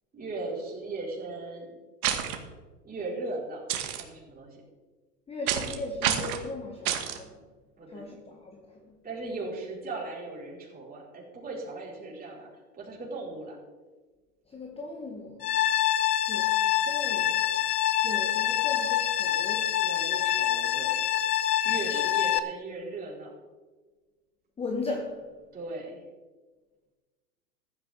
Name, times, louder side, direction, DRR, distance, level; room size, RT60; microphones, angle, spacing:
voice 1, 0.1-1.7 2.8-3.7 3.9-4.6 7.8-8.0 9.0-13.6 19.8-21.0 21.6-23.3 25.5-26.0, right 2 dB, 20° right, 4.8 m, -38 dB
sound 1, 2.0-2.4 3.7-4.0 5.5-5.7 6.0-6.4 6.8-7.2, right 10 dB, 60° right, 2.1 m, -28 dB
voice 2, 5.3-7.4 7.9-9.0 14.5-15.6 16.3-17.5 18.0-19.8 21.9-22.0 24.6-25.4, left 3 dB, 10° left, 1.1 m, -38 dB
sound 2, 15.4-22.4, left 12 dB, 70° left, 1.2 m, -26 dB
15.0 x 12.5 x 3.7 m
hypercardioid pair, 115°, 48 cm